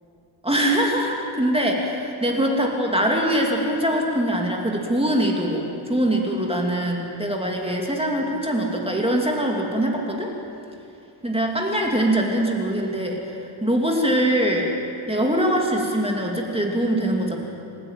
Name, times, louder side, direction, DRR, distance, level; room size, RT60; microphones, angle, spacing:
voice 1, 0.4-10.3 11.2-14.7 15.1-17.4, right 1 dB, 10° right, 0 dB, 2.6 m, -23 dB
28.0 x 15.5 x 9.1 m, 2.6 s
wide cardioid pair, 135°, 47 cm